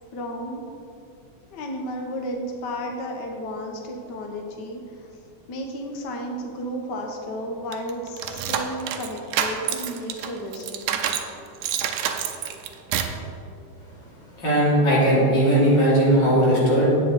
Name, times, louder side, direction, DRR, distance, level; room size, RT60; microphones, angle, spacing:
voice 1, 0.1-0.6 1.5-5.1 5.5-11.0, equal, 90° left, 2 dB, 0.9 m, -33 dB
sound 1, 7.7-11.3 11.6-13.2, right 8 dB, 90° right, 2.2 m, -27 dB
voice 2, 14.4-16.9, right 1 dB, 35° left, -7 dB, 3.4 m, -18 dB
10.5 x 8.5 x 4.5 m, 2.6 s
omnidirectional pair, 3.5 m